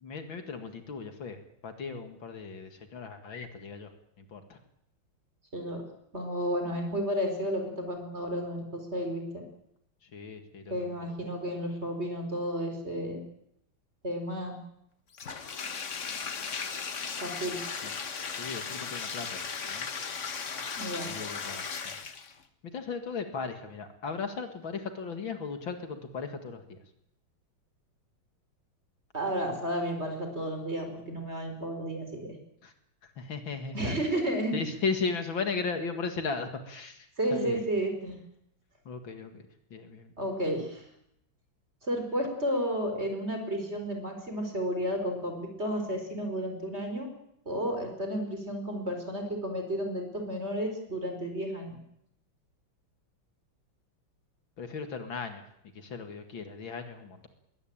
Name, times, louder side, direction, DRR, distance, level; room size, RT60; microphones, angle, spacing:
voice 1, 0.0-1.4 1.6-3.9 4.2-4.6 10.0-11.2 17.8-17.9 18.4-19.9 21.0-22.0 22.7-26.8 32.6-32.7 33.2-34.0 34.5-37.6 38.9-40.1 54.6-55.4 55.7-57.3, left 4 dB, 65° left, 7 dB, 2.7 m, -36 dB
voice 2, 6.1-9.4 10.7-13.2 14.0-14.6 17.2-17.6 20.8-21.1 29.1-32.4 33.7-34.5 37.2-38.1 40.2-40.8 41.8-47.1 47.5-51.7, equal, 30° right, 5 dB, 4.7 m, -32 dB
Bathtub (filling or washing), 15.1-22.4, left 6 dB, 40° left, 1.4 m, -36 dB
21.5 x 18.0 x 8.9 m, 0.76 s
omnidirectional pair, 2.3 m